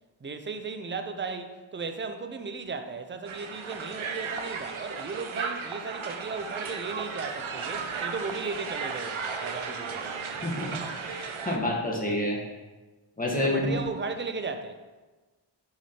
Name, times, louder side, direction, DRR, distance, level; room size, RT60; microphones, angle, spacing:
voice 1, 0.2-10.2 13.3-14.8, right 4 dB, 25° right, 0.4 m, -36 dB
Crowd, 3.3-11.6, right 5 dB, 75° right, 0.7 m, -35 dB
voice 2, 11.0-12.4 13.2-13.7, left 1 dB, 15° left, 1.3 m, -28 dB
6.0 x 5.9 x 2.8 m
wide cardioid pair, 95°, 49 cm